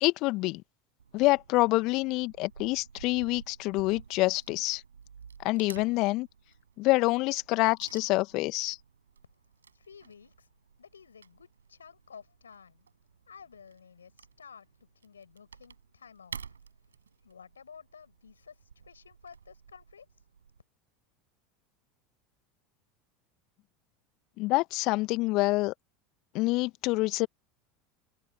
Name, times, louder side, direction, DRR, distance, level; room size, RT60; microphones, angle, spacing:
voice 1, 0.0-0.6 1.1-4.8 5.4-6.3 6.8-8.8 24.4-25.7 26.3-27.3, left 22 dB, 50° left, 1.7 m, -26 dB
Wood / Tearing, 1.0-20.6, right 6 dB, 80° right, 6.9 m, -52 dB
voice 2, 9.7-10.5 10.8-12.9 13.3-20.3, left 6 dB, 80° left, 8.0 m, -53 dB
figure-of-eight pair, 75°, 0 cm